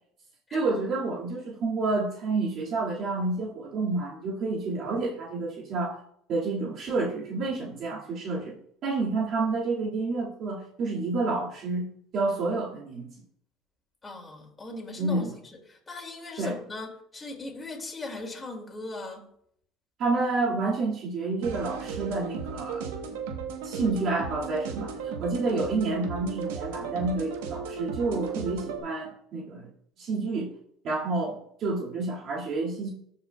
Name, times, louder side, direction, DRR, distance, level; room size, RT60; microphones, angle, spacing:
voice 1, 0.5-6.0 6.3-8.6 8.8-11.9 12.1-13.1 15.0-15.4 16.4-16.6 20.0-22.9 23.6-29.7 30.0-30.5 30.8-32.9, right 3 dB, 55° right, -4 dB, 2.0 m, -29 dB
voice 2, 14.0-15.3 15.7-19.3, left 2 dB, 20° left, 0 dB, 2.2 m, -39 dB
sound 1, 21.4-28.8, right 6 dB, 90° right, 1.0 m, -35 dB
14.0 x 4.9 x 2.3 m, 0.67 s
supercardioid pair, 95°, 0 cm